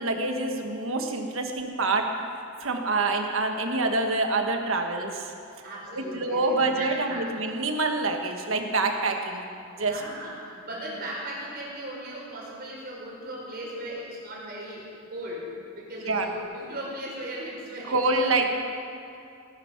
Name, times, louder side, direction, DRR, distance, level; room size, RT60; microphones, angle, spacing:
voice 1, 0.0-2.1 2.6-5.3 5.9-9.5 9.8-10.0 16.1-16.3 17.9-18.5, right 3 dB, 70° right, 4 dB, 1.5 m, -26 dB
voice 2, 5.6-7.2 9.7-18.3, right 1 dB, 50° right, -4 dB, 4.3 m, -37 dB
18.0 x 10.5 x 6.0 m, 2.6 s
head